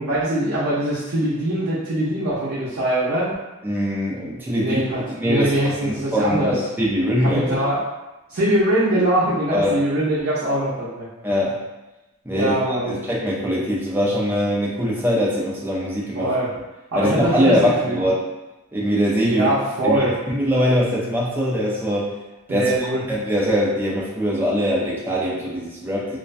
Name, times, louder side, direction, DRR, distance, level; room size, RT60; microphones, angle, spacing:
voice 1, 0.0-3.3 4.6-6.6 7.2-7.8 8.3-11.1 12.3-13.0 16.1-16.5 16.9-18.0 19.3-20.2 22.5-23.0, right 1 dB, 65° right, -9 dB, 0.5 m, -22 dB
voice 2, 3.6-4.8 5.1-7.6 9.5-9.8 11.2-11.6 12.3-12.6 12.9-16.3 16.9-18.3 18.7-19.5 19.8-22.1 22.5-22.7 23.1-26.2, equal, 10° right, -5 dB, 0.3 m, -22 dB
2.3 x 2.1 x 2.4 m, 1.1 s
head